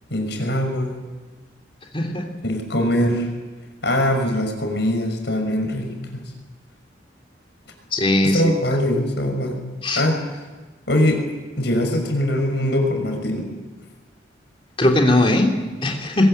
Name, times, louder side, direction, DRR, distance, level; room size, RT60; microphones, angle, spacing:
voice 1, 0.1-1.0 2.4-3.3 3.8-6.3 8.2-9.6 10.0-10.2 10.9-11.2 11.6-13.5, left 1 dB, 65° left, 4 dB, 5.9 m, -22 dB
voice 2, 1.9-2.3 7.9-8.4 9.8-10.0 14.8-16.3, left 1 dB, 30° left, 2 dB, 3.2 m, -19 dB
22.5 x 21.0 x 9.0 m, 1.2 s
head